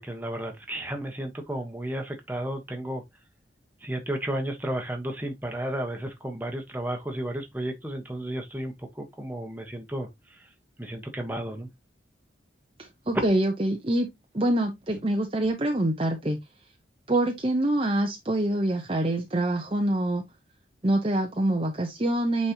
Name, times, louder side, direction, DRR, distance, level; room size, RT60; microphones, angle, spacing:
voice 1, 0.0-3.0 3.8-10.1 10.4-10.5 10.8-11.7, right 1 dB, 10° right, 1.3 m, -33 dB
voice 2, 12.8-14.1 14.3-16.4 17.1-20.2 20.8-22.5, right 1 dB, 30° right, 0.9 m, -25 dB
8.8 x 4.3 x 3.0 m
head